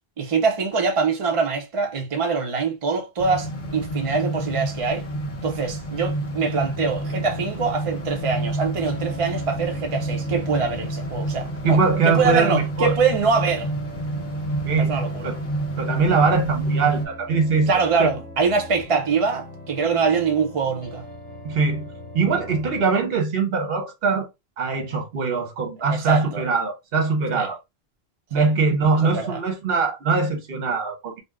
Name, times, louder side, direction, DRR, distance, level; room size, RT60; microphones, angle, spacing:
voice 1, 0.2-5.0 5.4-11.8 12.0-13.7 14.8-15.3 17.7-21.0 25.9-26.4 27.3-27.5 28.3-28.5 29.0-29.4, right 5 dB, 35° right, 0.6 m, -24 dB
sound 1, 3.2-17.1, right 1 dB, 55° left, 0.8 m, -29 dB
sound 2, 6.8-22.8, left 2 dB, 10° left, 0.7 m, -41 dB
voice 2, 11.6-12.9 14.7-15.4 15.8-18.1 21.4-24.3 24.6-27.6 28.3-31.2, right 4 dB, 70° right, 1.0 m, -22 dB
2.6 x 2.1 x 3.4 m
omnidirectional pair, 1.0 m